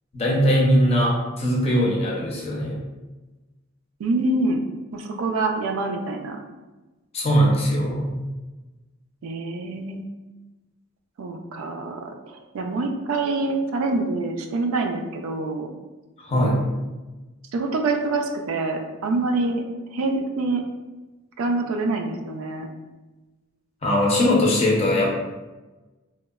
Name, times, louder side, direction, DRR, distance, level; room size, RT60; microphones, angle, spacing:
voice 1, 0.1-2.8 7.1-8.2 16.2-16.7 23.8-25.1, equal, 30° left, -3 dB, 0.5 m, -20 dB
voice 2, 4.0-4.6 4.9-6.4 9.2-10.0 11.2-15.7 16.3-16.6 17.5-19.6 19.9-20.6 21.4-22.7, right 2 dB, 85° right, 4 dB, 0.3 m, -26 dB
2.9 x 2.1 x 2.2 m, 1.2 s
head